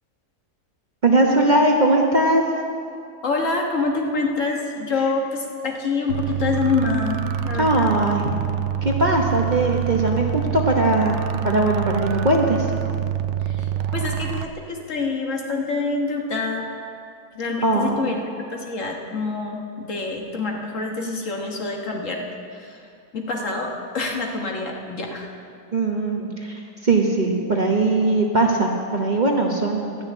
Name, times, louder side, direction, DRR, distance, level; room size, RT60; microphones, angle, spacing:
voice 1, 1.0-2.4 7.5-8.2 8.8-11.2 11.4-12.7 17.6-18.1 25.7-30.0, right 2 dB, 35° right, 0 dB, 1.0 m, -20 dB
voice 2, 3.2-8.0 13.5-16.7 17.3-18.2 18.5-22.3 22.5-22.8 23.1-25.3, left 3 dB, 55° left, 1 dB, 1.6 m, -26 dB
sound 1, 6.1-14.5, right 9 dB, 65° right, 0.7 m, -26 dB
12.5 x 6.4 x 9.7 m, 2.5 s
omnidirectional pair, 1.6 m